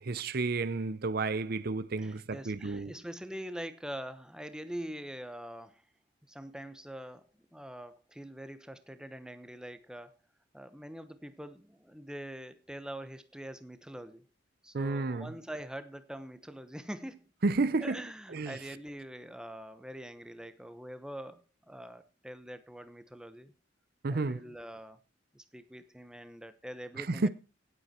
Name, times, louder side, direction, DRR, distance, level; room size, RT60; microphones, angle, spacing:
voice 1, 0.0-2.9 14.7-15.3 17.4-18.0 18.3-18.6 24.0-24.4 27.0-27.3, right 3 dB, 50° right, 0.7 m, -31 dB
voice 2, 2.0-5.8 6.3-10.1 10.5-14.2 14.6-17.3 17.8-23.5 24.1-25.0 25.3-27.3, equal, 5° right, 1.0 m, -44 dB
17.0 x 8.2 x 4.4 m
head